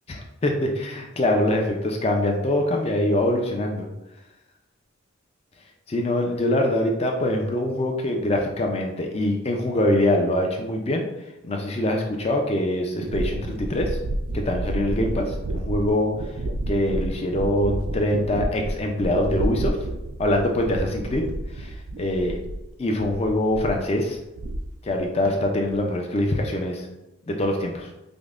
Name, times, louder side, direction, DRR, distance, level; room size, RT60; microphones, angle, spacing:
voice 1, 0.1-3.9 5.9-11.0 11.4-14.0 14.3-16.1 16.7-19.8 20.2-21.3 21.6-22.4 22.8-24.2 24.8-26.9 27.3-27.9, left 1 dB, 30° left, 2 dB, 0.4 m, -24 dB
sound 1, 13.0-22.7 23.0-23.8 24.1-25.0 25.2-25.8, right 1 dB, 75° right, 0.4 m, -30 dB
5.1 x 2.1 x 2.4 m, 0.95 s
head